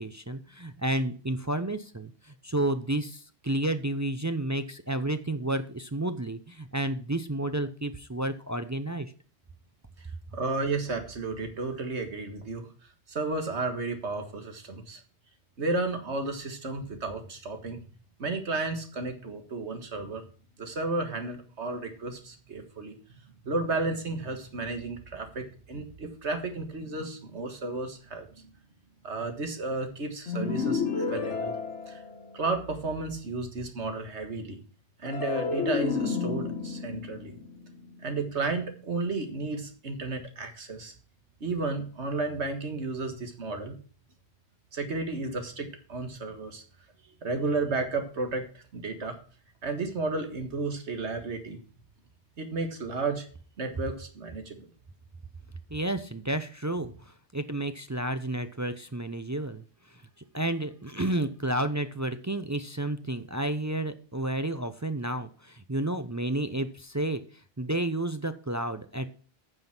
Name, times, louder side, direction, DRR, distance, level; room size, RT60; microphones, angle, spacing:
voice 1, 0.0-9.1 55.7-60.0 60.3-69.1, right 1 dB, 25° right, 9 dB, 0.4 m, -31 dB
voice 2, 10.3-12.7 13.1-15.0 15.6-17.8 18.2-20.2 20.6-23.0 23.4-28.5 29.0-31.5 31.9-32.0 32.3-34.6 35.0-37.4 38.0-40.9 41.4-43.8 44.7-46.6 47.2-49.2 49.6-51.6 52.4-53.3 53.6-54.7, right 3 dB, 75° right, 6 dB, 1.9 m, -33 dB
sound 1, 30.3-32.6 35.1-38.4, left 5 dB, 80° left, 1.5 m, -31 dB
9.2 x 5.7 x 5.9 m, 0.40 s
omnidirectional pair, 1.2 m